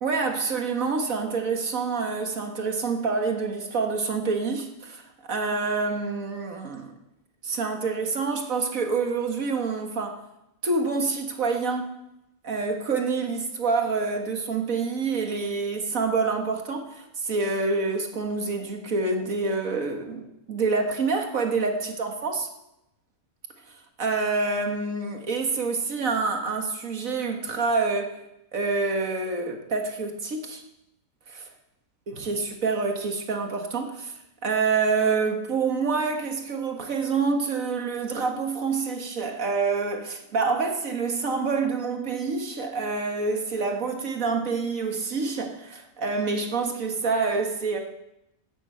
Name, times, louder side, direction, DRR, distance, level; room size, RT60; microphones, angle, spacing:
voice 1, 0.0-6.9 7.4-10.2 10.6-11.9 12.4-22.5 23.7-28.2 28.5-30.6 31.3-31.5 32.1-34.1 34.4-47.8, right 4 dB, 75° right, 4 dB, 2.1 m, -27 dB
14.0 x 9.9 x 7.8 m, 0.86 s
omnidirectional pair, 1.4 m